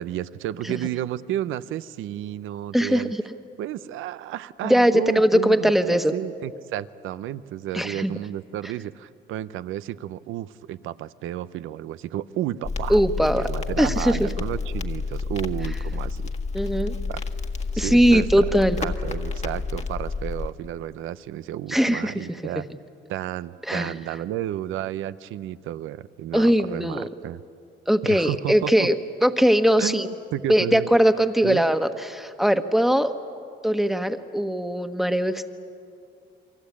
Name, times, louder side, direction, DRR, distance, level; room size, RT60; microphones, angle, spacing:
voice 1, 0.0-3.1 3.6-13.0 13.3-16.2 17.1-17.2 17.7-18.4 18.7-22.6 23.1-27.4 28.0-28.9 29.8-30.9 31.4-31.6, right 12 dB, 85° right, 15 dB, 0.7 m, -32 dB
voice 2, 4.6-6.1 7.7-8.1 12.9-13.5 13.8-14.3 16.5-16.9 17.8-18.8 21.7-22.3 23.7-23.9 26.3-27.1 27.9-29.0 29.2-30.1 30.5-33.1 33.6-35.5, equal, ahead, 8 dB, 1.4 m, -20 dB
Crackle, 12.6-20.5, left 4 dB, 35° left, 1.6 m, -30 dB
29.0 x 23.5 x 8.5 m, 2.5 s
cardioid pair, 90°, 20 cm